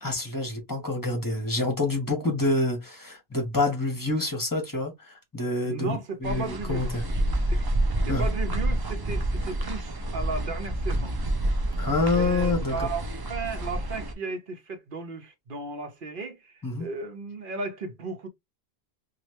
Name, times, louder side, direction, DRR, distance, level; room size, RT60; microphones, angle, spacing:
voice 1, 0.0-7.0 8.1-8.2 11.8-12.9 16.6-16.8, left 2 dB, 20° left, 1.1 m, -27 dB
voice 2, 5.6-7.6 8.0-11.2 12.1-18.3, right 3 dB, 55° right, 1.0 m, -35 dB
sound 1, 6.2-14.1, right 1 dB, 35° right, 0.4 m, -28 dB
3.1 x 2.4 x 3.1 m
omnidirectional pair, 1.1 m